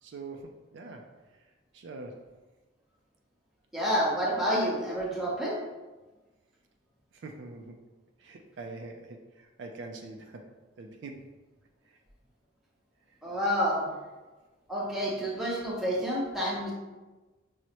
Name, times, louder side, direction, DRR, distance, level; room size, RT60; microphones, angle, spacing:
voice 1, 0.0-2.3 7.1-7.8 8.2-11.3 11.9-12.0 13.1-13.2 13.9-14.0, right 3 dB, 60° right, 3 dB, 0.3 m, -45 dB
voice 2, 3.7-5.6 13.2-13.8 14.7-16.7, equal, ahead, -6 dB, 0.7 m, -29 dB
6.1 x 2.1 x 2.8 m, 1.2 s
head